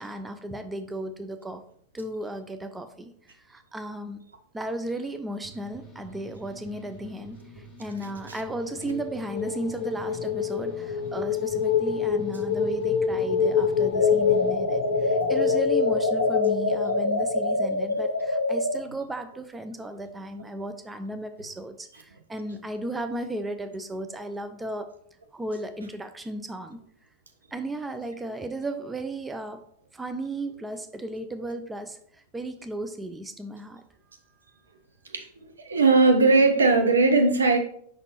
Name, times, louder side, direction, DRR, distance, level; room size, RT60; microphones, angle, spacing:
voice 1, 0.0-1.6 1.9-4.2 4.5-24.9 25.3-26.8 27.5-29.6 29.9-33.8, right 1 dB, 10° right, 8 dB, 0.4 m, -35 dB
sound 1, 5.4-14.5, equal, 15° left, 1.5 m, -48 dB
sound 2, 8.7-17.6, left 7 dB, 45° left, 0.8 m, -26 dB
sound 3, 13.9-18.8, left 1 dB, 85° left, 0.6 m, -26 dB
voice 2, 35.6-37.6, right 3 dB, 75° right, 4 dB, 0.8 m, -19 dB
5.3 x 4.1 x 4.3 m, 0.64 s
figure-of-eight pair, 90°, 0 cm